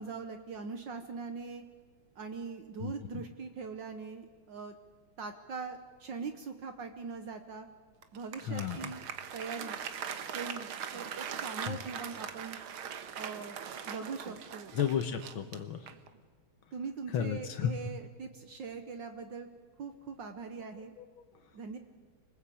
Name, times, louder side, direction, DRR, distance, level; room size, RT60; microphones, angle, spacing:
voice 1, 0.0-1.6 2.2-4.8 5.2-7.7 8.1-9.8 10.3-12.6 13.2-13.6 13.8-14.7 16.7-19.5 19.8-20.9 21.5-21.8, right 5 dB, 65° right, 7 dB, 1.8 m, -41 dB
Applause, 8.0-16.2, right 8 dB, 80° right, 2.1 m, -41 dB
voice 2, 8.5-8.9 11.7-11.8 14.7-15.8 17.1-17.7, left 8 dB, 75° left, 7 dB, 1.8 m, -32 dB
26.5 x 20.0 x 8.6 m, 1.5 s
omnidirectional pair, 2.3 m